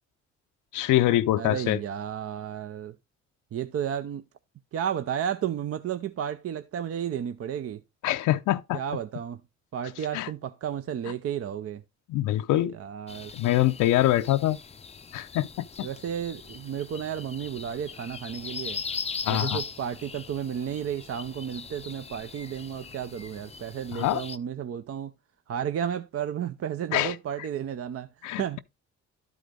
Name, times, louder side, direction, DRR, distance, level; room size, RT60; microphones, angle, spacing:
voice 1, 0.7-1.8 8.0-8.8 10.1-10.3 12.1-12.7 13.3-14.6 15.1-15.9 19.2-19.6 23.9-24.2 26.9-27.1 28.2-28.6, left 14 dB, 90° left, 0.6 m, -24 dB
voice 2, 1.4-3.0 3.5-4.2 4.7-7.8 8.7-9.4 9.7-11.8 12.7-13.3 15.8-18.8 19.3-25.1 25.5-28.1 28.4-28.6, right 9 dB, 50° right, 0.6 m, -32 dB
sound 1, 13.1-24.4, left 5 dB, 20° left, 0.5 m, -40 dB
12.0 x 4.9 x 3.7 m
cardioid pair, 90°, 30 cm